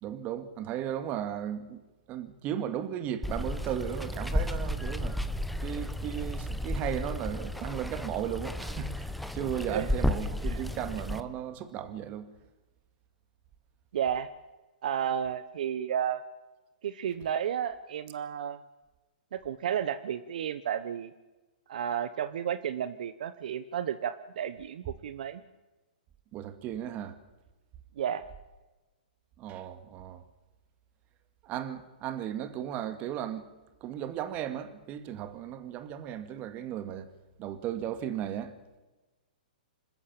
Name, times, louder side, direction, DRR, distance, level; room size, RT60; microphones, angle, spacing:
voice 1, 0.0-1.8 2.1-5.2 5.6-12.3 26.3-27.2 29.4-30.2 31.4-33.4 33.8-37.1 37.4-38.6, right 10 dB, 30° right, 2.1 m, -35 dB
Water, 3.2-11.2, left 1 dB, ahead, 1.1 m, -33 dB
voice 2, 13.9-14.3 14.8-16.2 16.8-18.6 19.3-21.1 21.7-25.4 28.0-28.2, right 9 dB, 65° right, 1.0 m, -32 dB
26.5 x 13.5 x 9.0 m
hypercardioid pair, 130°, 5 cm